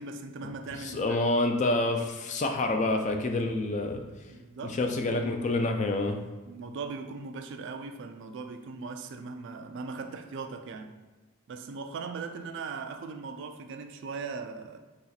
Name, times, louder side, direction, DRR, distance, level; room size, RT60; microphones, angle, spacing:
voice 1, 0.0-1.3 4.3-4.8 6.4-11.0 11.5-14.8, right 4 dB, 55° right, 0.3 m, -39 dB
voice 2, 0.8-4.0 4.6-6.2, left 2 dB, 35° left, 0.3 m, -27 dB
2.9 x 2.8 x 4.0 m
head